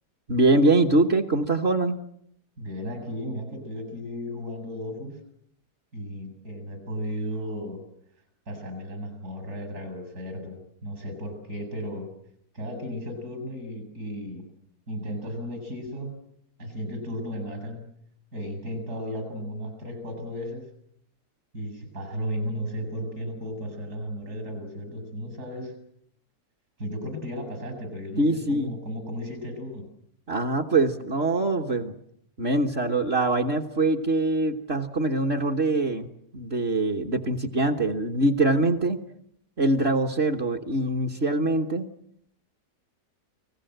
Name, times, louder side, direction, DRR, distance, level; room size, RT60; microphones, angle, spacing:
voice 1, 0.3-2.0 28.2-28.7 30.3-32.0 32.4-36.1 36.3-39.0 39.6-41.9, right 2 dB, 40° right, 2 dB, 1.4 m, -23 dB
voice 2, 2.6-5.2 5.9-7.8 8.5-12.1 12.5-14.5 14.9-16.1 16.6-17.8 18.3-20.6 21.5-25.7 26.8-29.8, equal, 65° right, 7 dB, 8.0 m, -34 dB
30.0 x 19.5 x 7.9 m, 0.70 s
omnidirectional pair, 1.8 m